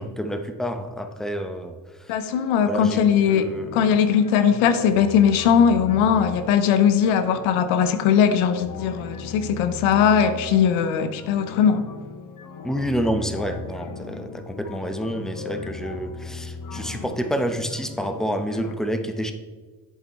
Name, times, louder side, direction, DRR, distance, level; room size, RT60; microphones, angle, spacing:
voice 1, 0.0-2.2 2.7-3.0 3.3-3.7 12.6-19.3, equal, ahead, 7 dB, 0.9 m, -28 dB
voice 2, 2.1-3.5 3.7-11.9, left 7 dB, 80° left, 10 dB, 0.7 m, -19 dB
sound 1, 3.1-18.8, left 4 dB, 40° left, 0.8 m, -38 dB
7.8 x 7.5 x 3.1 m, 1.4 s
hypercardioid pair, 45°, 47 cm